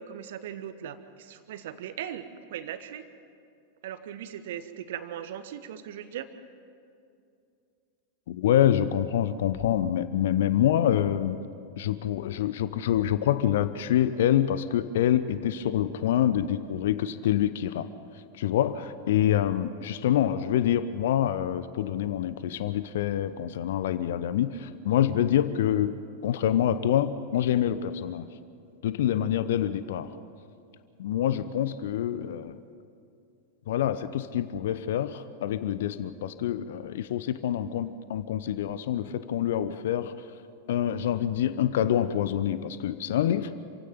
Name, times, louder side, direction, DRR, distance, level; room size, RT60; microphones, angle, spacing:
voice 1, 0.0-3.0 3.8-6.3, right 10 dB, 55° right, 11 dB, 1.4 m, -39 dB
voice 2, 8.3-11.4 11.8-17.9 18.4-26.0 26.2-28.3 28.8-30.1 31.0-32.6 33.7-40.1 40.7-43.5, left 10 dB, 55° left, 14 dB, 0.8 m, -26 dB
27.5 x 16.5 x 9.6 m, 2.5 s
figure-of-eight pair, 90°, 0 cm